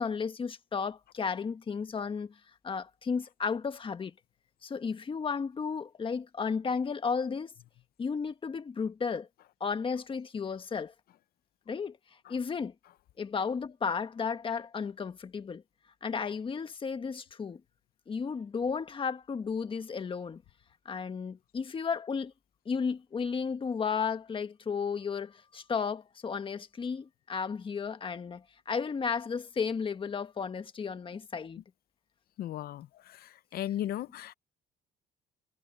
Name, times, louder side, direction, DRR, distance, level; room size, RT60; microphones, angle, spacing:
voice 1, 0.0-2.4 2.6-4.1 4.6-7.5 8.0-9.3 9.6-10.9 11.7-12.0 12.3-12.7 13.2-15.6 16.0-17.6 18.1-20.4 20.8-22.3 22.6-31.6, left 5 dB, 30° left, 1.6 m, -33 dB
voice 2, 32.4-32.9 33.5-34.3, left 12 dB, 65° left, 0.7 m, -35 dB
cardioid pair, 110°, 17 cm